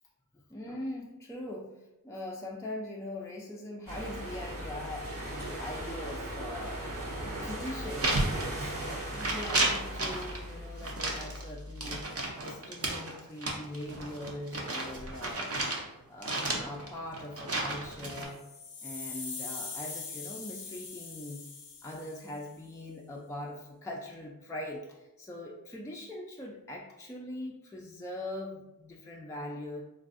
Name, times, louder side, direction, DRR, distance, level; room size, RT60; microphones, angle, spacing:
voice 1, 0.3-7.1 7.4-8.1 8.6-12.0 12.4-15.6 16.1-18.4 18.8-21.5 21.8-29.8, left 1 dB, 10° left, -2 dB, 0.4 m, -41 dB
sound 1, 3.9-12.0, right 1 dB, 70° right, 0.9 m, -38 dB
sound 2, 8.0-8.9 9.1-10.4 10.8-15.8 16.2-18.3, right 2 dB, 45° right, 0.6 m, -32 dB
sound 3, 18.2-22.4, left 4 dB, 80° left, 0.5 m, -42 dB
3.1 x 2.5 x 2.5 m, 0.95 s
wide cardioid pair, 50°, 34 cm